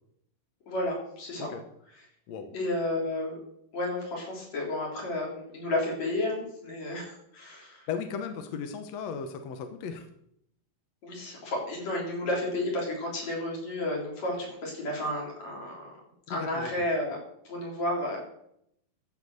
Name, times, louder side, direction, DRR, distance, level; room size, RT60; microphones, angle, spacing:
voice 1, 0.7-1.5 2.5-3.3 3.7-7.9 11.0-15.9 16.3-17.2 17.4-18.3, left 1 dB, 50° left, -3 dB, 4.9 m, -32 dB
voice 2, 7.9-10.1 16.3-16.7, left 6 dB, 70° left, 7 dB, 1.6 m, -36 dB
13.5 x 6.0 x 6.4 m, 0.74 s
omnidirectional pair, 4.2 m